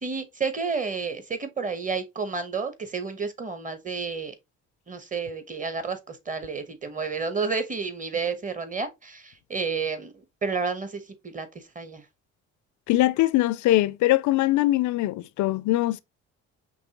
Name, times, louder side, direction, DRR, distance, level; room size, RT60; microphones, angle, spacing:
voice 1, 0.0-4.3 4.9-10.1 10.4-12.0, right 5 dB, 25° right, 1.1 m, -31 dB
voice 2, 12.9-16.0, left 16 dB, 75° left, 0.5 m, -22 dB
5.3 x 3.2 x 2.9 m
cardioid pair, 90°, 30 cm